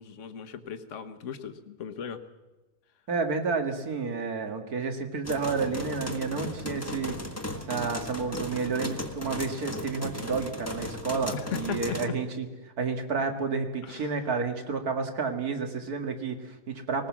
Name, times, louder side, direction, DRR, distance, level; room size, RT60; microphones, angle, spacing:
voice 1, 0.0-2.2 11.3-12.0 13.8-14.1, left 8 dB, 50° left, 8 dB, 1.4 m, -37 dB
voice 2, 3.1-7.2 7.5-17.1, right 4 dB, 65° right, 5 dB, 2.3 m, -30 dB
sound 1, 5.2-12.1, left 1 dB, 10° left, 1.3 m, -36 dB
20.0 x 19.0 x 7.4 m, 1.1 s
omnidirectional pair, 1.7 m